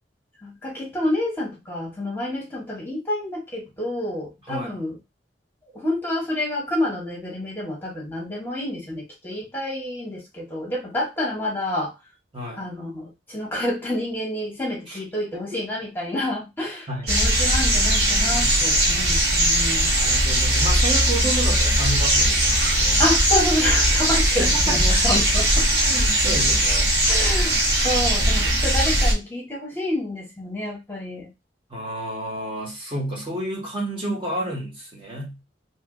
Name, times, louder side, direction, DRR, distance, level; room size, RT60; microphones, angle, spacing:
voice 1, 0.4-5.0 5.7-11.9 12.5-19.9 23.0-25.7 27.1-31.3, left 1 dB, 10° left, -3 dB, 1.2 m, -28 dB
voice 2, 12.3-12.6 14.9-15.0 15.3-15.6 16.9-17.1 20.0-23.0 24.4-25.0 25.8-26.9 31.7-35.4, right 1 dB, 30° right, -3 dB, 1.4 m, -30 dB
sound 1, 17.1-29.1, right 1 dB, 60° right, 1.4 m, -19 dB
2.9 x 2.7 x 3.7 m, 0.23 s
head